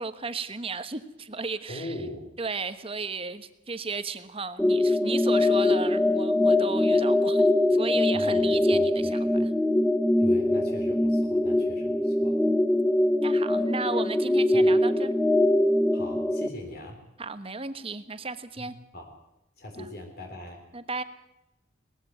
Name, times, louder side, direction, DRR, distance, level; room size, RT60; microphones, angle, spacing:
voice 1, 0.0-1.9 2.4-9.3 13.2-15.1 17.2-18.7 19.8-19.9 20.7-21.0, right 4 dB, 30° right, 11 dB, 1.3 m, -34 dB
voice 2, 1.7-2.3 8.1-8.5 8.7-9.5 10.2-12.4 14.5-14.7 15.9-17.0 18.6-19.1 19.6-20.6, left 1 dB, 55° left, 2 dB, 3.6 m, -41 dB
sound 1, 4.6-16.5, left 1 dB, 5° left, 0.8 m, -23 dB
19.5 x 15.0 x 9.4 m, 0.91 s
head